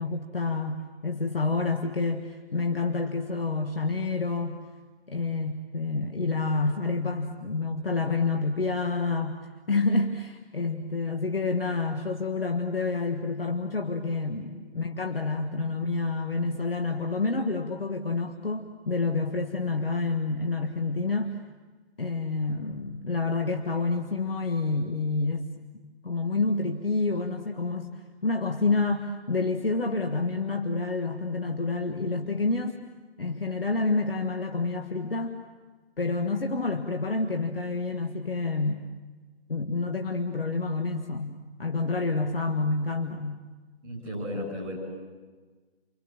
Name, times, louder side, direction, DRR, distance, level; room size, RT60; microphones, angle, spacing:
voice 1, 0.0-4.6 5.1-9.4 9.7-21.4 22.0-25.5 26.0-27.9 28.2-32.8 33.2-35.4 36.0-38.9 39.5-43.4, left 3 dB, 60° left, 5 dB, 1.7 m, -28 dB
voice 2, 43.8-44.8, left 1 dB, 15° right, 2 dB, 7.2 m, -34 dB
28.5 x 25.0 x 7.5 m, 1.4 s
figure-of-eight pair, 150°, 33 cm